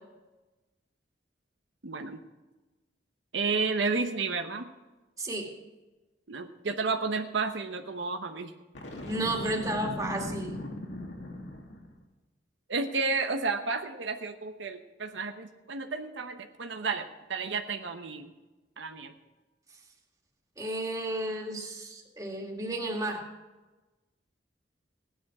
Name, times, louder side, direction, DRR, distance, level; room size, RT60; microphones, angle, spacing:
voice 1, 1.8-2.2 3.3-4.7 6.3-8.5 12.7-18.3 18.8-19.1, right 4 dB, 90° right, 6 dB, 1.0 m, -32 dB
voice 2, 5.2-5.5 9.0-10.7 20.6-23.2, right 1 dB, 20° right, 0 dB, 2.2 m, -33 dB
Boom, 8.8-12.0, left 1 dB, 80° left, 2.4 m, -38 dB
16.5 x 10.5 x 4.8 m, 1.2 s
head